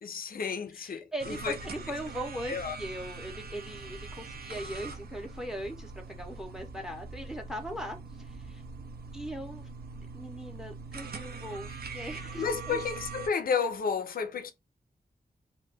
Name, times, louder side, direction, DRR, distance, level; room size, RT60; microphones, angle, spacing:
voice 1, 0.0-1.6 2.5-2.8 11.7-11.8 12.4-14.5, left 6 dB, 65° left, 0.4 m, -32 dB
voice 2, 0.7-5.9 6.2-8.6 9.1-9.7 10.1-12.8, equal, 5° right, 0.6 m, -39 dB
sound 1, 1.2-13.3, right 4 dB, 75° right, 0.4 m, -42 dB
2.2 x 2.2 x 3.2 m
wide cardioid pair, 90°, 16 cm